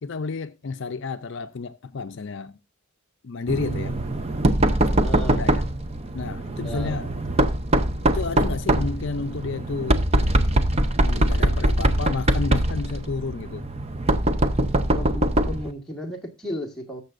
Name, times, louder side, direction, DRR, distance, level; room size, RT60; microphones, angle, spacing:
voice 1, 0.0-2.6 3.2-4.0 5.3-5.7 6.1-7.1 8.0-10.0 11.0-13.7, left 4 dB, 55° left, 0.5 m, -31 dB
Knock, 3.5-15.7, right 1 dB, 25° right, 0.6 m, -22 dB
voice 2, 4.8-5.5 6.6-7.0 14.9-17.0, equal, ahead, 1.6 m, -34 dB
20.0 x 6.8 x 2.5 m
head